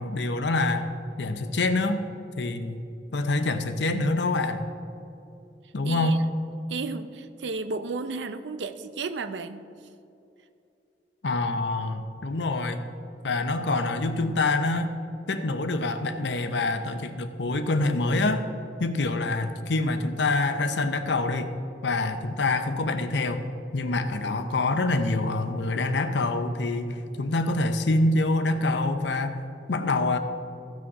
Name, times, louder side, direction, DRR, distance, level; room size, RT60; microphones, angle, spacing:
voice 1, 0.0-2.0 2.4-2.8 3.1-4.6 5.7-6.2 11.2-12.8 13.2-15.0 15.3-18.4 18.8-21.5 21.8-23.4 23.7-29.4 29.7-30.2, left 2 dB, 80° left, 9 dB, 0.7 m, -26 dB
voice 2, 5.8-6.2 6.7-9.6, right 4 dB, 80° right, 11 dB, 0.5 m, -33 dB
15.0 x 6.3 x 4.8 m, 2.7 s
head